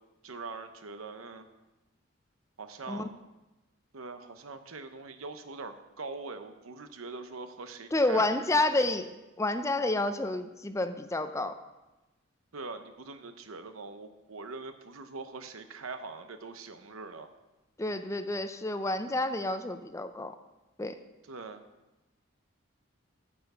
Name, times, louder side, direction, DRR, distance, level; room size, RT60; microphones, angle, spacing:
voice 1, 0.2-1.5 2.6-3.1 3.9-9.0 12.5-17.3 21.3-21.6, right 3 dB, 85° right, 8 dB, 0.9 m, -43 dB
voice 2, 7.9-11.6 17.8-20.3 20.8-21.0, left 2 dB, 15° left, 9 dB, 0.4 m, -29 dB
8.5 x 6.9 x 6.8 m, 1.1 s
head